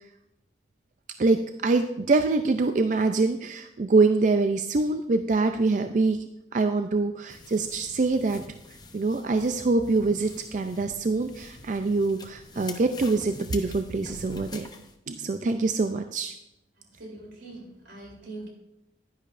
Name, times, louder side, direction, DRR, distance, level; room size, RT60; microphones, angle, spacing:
voice 1, 1.2-6.2 6.5-8.4 8.9-14.7 15.1-16.3, right 3 dB, 45° right, 7 dB, 0.4 m, -24 dB
sound 1, 7.3-14.9, left 3 dB, 25° left, 0.7 m, -45 dB
voice 2, 17.0-18.5, right 2 dB, 90° right, -1 dB, 3.3 m, -42 dB
10.5 x 10.0 x 2.5 m, 0.81 s
head